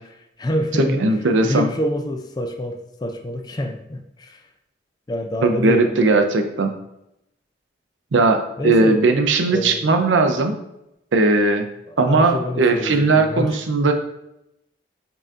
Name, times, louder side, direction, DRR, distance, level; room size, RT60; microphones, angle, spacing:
voice 1, 0.4-1.1 1.4-4.4 5.1-6.2 8.6-9.0 9.5-9.9 11.9-13.6, equal, 20° left, 5 dB, 0.3 m, -26 dB
voice 2, 1.0-1.6 5.4-6.7 8.1-10.5 11.1-11.6 12.0-13.9, right 3 dB, 90° right, 6 dB, 0.5 m, -18 dB
5.4 x 2.7 x 2.4 m, 0.84 s
head